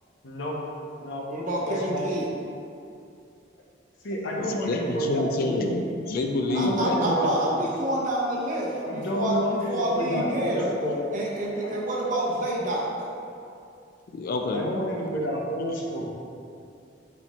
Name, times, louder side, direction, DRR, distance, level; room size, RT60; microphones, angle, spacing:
voice 1, 0.2-0.6 1.0-1.2 1.6-2.1 4.0-5.8 6.5-7.7 8.8-11.0 11.6-11.7 14.5-16.1, equal, 85° left, -2 dB, 0.8 m, -30 dB
voice 2, 1.3-2.3 6.5-10.7 11.1-13.1, right 1 dB, 45° right, -4 dB, 0.8 m, -28 dB
voice 3, 4.4-7.0 14.1-14.6, left 2 dB, 50° left, 3 dB, 0.3 m, -28 dB
4.3 x 4.1 x 3.0 m, 2.5 s
head